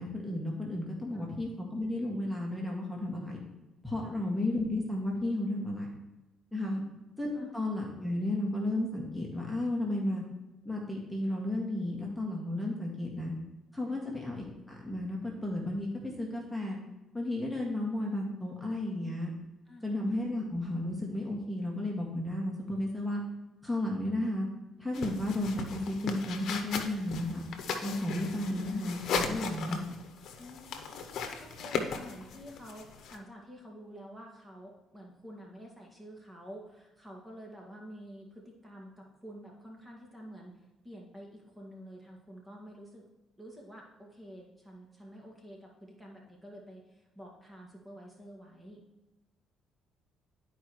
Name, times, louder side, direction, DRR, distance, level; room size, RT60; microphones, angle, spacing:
voice 1, 0.0-3.4 3.8-5.9 6.5-6.8 7.2-10.2 10.7-13.3 13.7-16.8 17.1-19.3 19.8-23.2 23.6-24.5 24.8-27.4 27.8-29.8, left 1 dB, ahead, -2 dB, 1.9 m, -33 dB
sound 1, 24.9-33.2, left 5 dB, 70° left, 0.9 m, -37 dB
voice 2, 30.4-43.1 43.4-48.8, equal, 15° right, -2 dB, 1.9 m, -49 dB
12.0 x 4.8 x 3.1 m, 1.0 s
cardioid pair, 85°, 0 cm